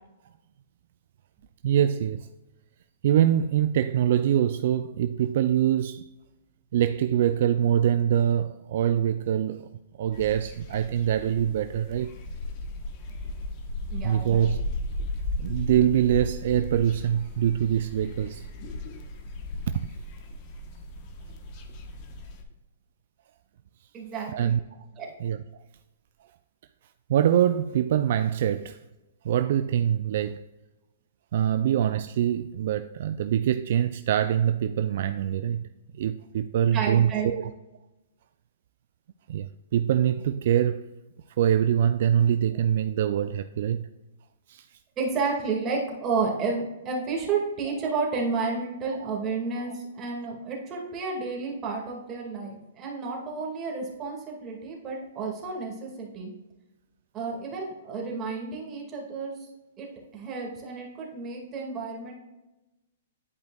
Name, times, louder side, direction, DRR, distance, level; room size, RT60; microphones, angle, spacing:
voice 1, 1.6-2.3 3.0-6.1 6.7-9.7 10.0-12.1 14.0-14.6 15.4-18.4 19.7-19.8 24.3-24.6 25.2-25.4 27.1-28.8 29.2-30.4 31.3-35.7 35.9-37.5 39.3-40.8 41.4-43.9 44.5-44.7 49.0-49.1, right 10 dB, 60° right, 0.3 m, -24 dB
sound 1, 10.1-22.4, left 1 dB, 40° left, 1.1 m, -36 dB
voice 2, 13.9-14.5 23.9-24.6 25.0-25.1 36.7-37.3 45.0-56.3 57.1-59.4 59.8-59.9 60.1-62.1, right 4 dB, 25° right, 2.0 m, -31 dB
11.0 x 5.1 x 2.4 m
hypercardioid pair, 130°, 0 cm